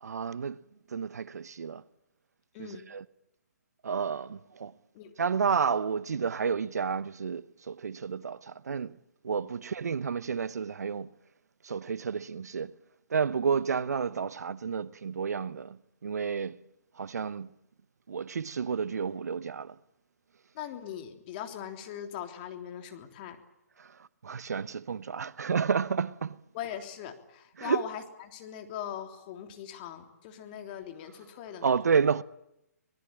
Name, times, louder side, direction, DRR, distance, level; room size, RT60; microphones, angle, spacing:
voice 1, 0.0-0.6 0.9-1.8 2.6-3.0 3.8-4.7 5.2-9.0 9.2-11.1 11.6-12.8 13.1-16.6 17.0-17.5 18.1-19.8 23.8-26.4 27.6-27.8 31.6-32.2, right 6 dB, 70° right, 0.9 m, -31 dB
voice 2, 2.5-2.8 4.9-5.1 9.4-9.5 13.4-13.5 20.5-23.4 26.5-31.7, left 10 dB, 35° left, 3.4 m, -40 dB
26.0 x 19.0 x 8.9 m
hypercardioid pair, 140°, 9 cm